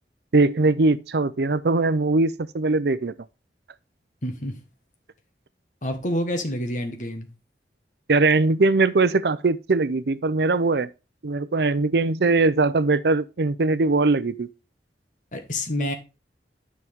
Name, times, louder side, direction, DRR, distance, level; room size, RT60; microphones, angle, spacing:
voice 1, 0.3-3.1 8.1-10.9 11.2-14.5, right 3 dB, 70° right, 0.6 m, -21 dB
voice 2, 4.2-4.6 5.8-7.3 15.3-15.9, left 1 dB, 45° left, 1.5 m, -28 dB
9.6 x 6.2 x 3.6 m
head